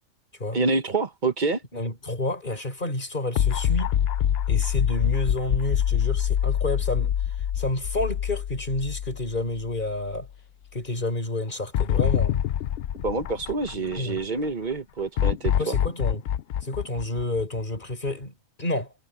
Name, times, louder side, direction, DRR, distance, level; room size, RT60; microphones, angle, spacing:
voice 1, 0.5-1.6 13.0-15.8, right 3 dB, 35° right, 1.3 m, -27 dB
voice 2, 1.7-3.9 4.5-10.3 10.7-12.4 14.0-14.2 15.6-16.2 16.6-18.9, left 2 dB, 35° left, 5.0 m, -30 dB
sound 1, 3.4-9.7 10.1-10.2 11.7-14.2 15.2-17.9, left 10 dB, 60° left, 0.6 m, -25 dB
omnidirectional pair, 1.5 m